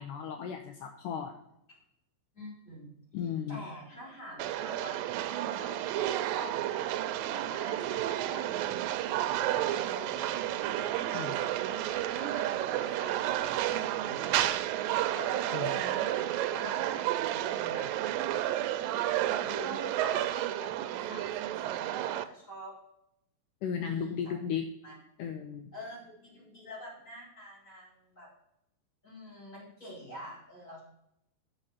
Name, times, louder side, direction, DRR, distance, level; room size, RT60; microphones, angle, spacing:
voice 1, 0.0-1.3 3.1-3.6 11.1-11.3 15.5-15.7 23.6-24.7 25.2-25.7, left 8 dB, 75° left, 5 dB, 2.1 m, -35 dB
voice 2, 2.3-2.9 3.5-5.0 5.5-7.0 7.3-8.4 9.0-14.5 15.1-17.9 19.4-22.7 23.9-24.4 24.8-24.9 25.7-28.3 29.0-30.8, equal, 15° left, -5 dB, 3.9 m, -47 dB
sound 1, 4.4-22.2, right 13 dB, 85° right, 2.3 m, -31 dB
6.5 x 6.1 x 7.2 m, 0.79 s
omnidirectional pair, 4.0 m